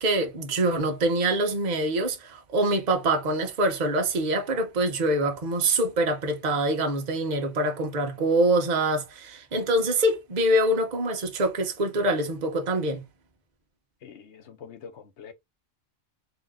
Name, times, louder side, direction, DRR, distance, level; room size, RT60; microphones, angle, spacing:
voice 1, 0.0-13.0, right 1 dB, 40° right, 0.9 m, -25 dB
voice 2, 14.0-15.3, left 7 dB, 65° left, 0.9 m, -45 dB
3.9 x 2.5 x 3.5 m
omnidirectional pair, 1.4 m